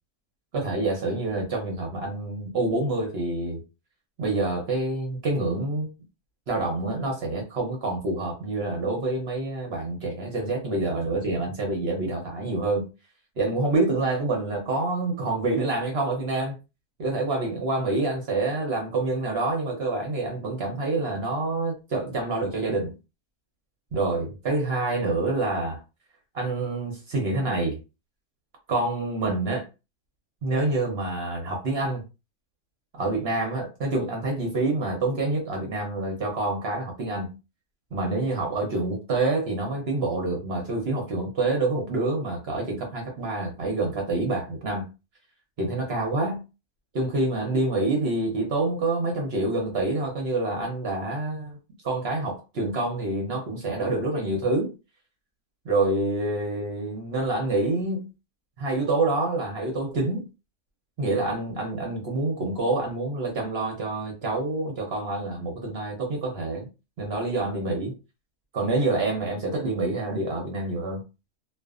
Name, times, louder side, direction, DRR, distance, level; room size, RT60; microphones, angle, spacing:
voice 1, 0.5-3.6 4.2-5.9 6.5-12.9 13.4-16.5 17.0-23.0 23.9-25.8 26.3-27.8 28.7-29.7 30.4-32.0 32.9-37.4 37.9-44.9 45.6-46.4 46.9-51.6 51.8-54.7 55.6-58.1 58.6-60.3 61.0-66.7 67.0-67.9 68.5-71.0, right 2 dB, 55° right, 0.7 m, -27 dB
2.5 x 2.2 x 2.4 m
omnidirectional pair, 1.7 m